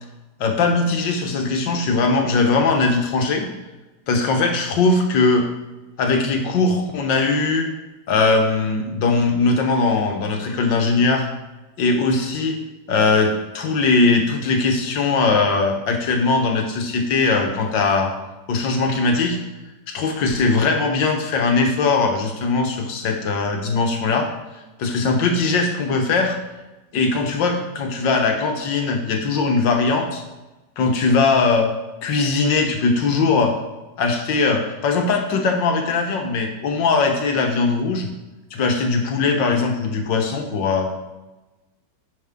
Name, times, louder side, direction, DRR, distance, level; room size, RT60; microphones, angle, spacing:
voice 1, 0.4-3.5 4.1-5.5 6.0-7.7 8.1-11.3 11.8-12.6 12.9-18.1 18.5-19.4 19.9-24.3 24.8-26.4 26.9-30.2 30.8-31.7 32.0-33.5 34.0-38.1 38.5-40.9, left 3 dB, 80° left, 4 dB, 1.8 m, -20 dB
9.5 x 6.1 x 3.7 m, 1.1 s
omnidirectional pair, 2.0 m